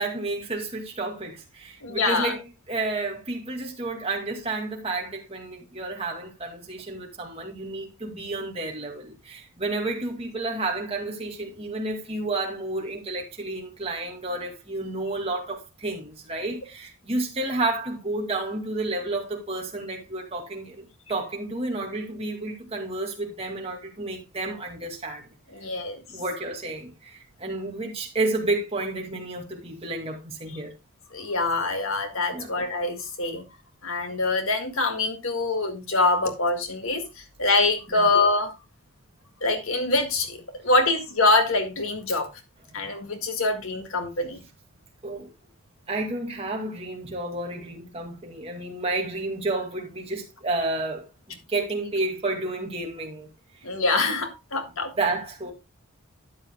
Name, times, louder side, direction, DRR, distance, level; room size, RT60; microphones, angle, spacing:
voice 1, 0.0-25.3 26.1-30.7 32.3-32.5 37.9-38.1 45.0-45.3 45.9-53.3 54.9-55.5, right 2 dB, 25° right, 2.2 m, -31 dB
voice 2, 1.8-2.3 25.5-26.0 31.1-33.4 33.8-37.0 37.4-38.5 39.4-42.3 42.7-44.4 53.6-54.9, left 3 dB, 65° left, 1.8 m, -24 dB
12.5 x 8.7 x 2.2 m
head